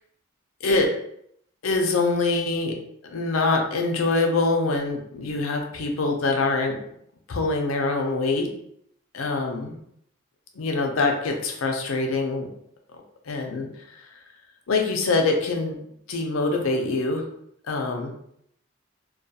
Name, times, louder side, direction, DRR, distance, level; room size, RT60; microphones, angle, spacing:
voice 1, 1.6-2.7 3.0-6.8 7.3-8.5 9.1-9.8 10.6-12.5 13.3-13.7 14.7-15.8 16.1-17.2 17.7-18.1, left 3 dB, 90° left, 2 dB, 0.5 m, -24 dB
2.3 x 2.3 x 2.7 m, 0.72 s
head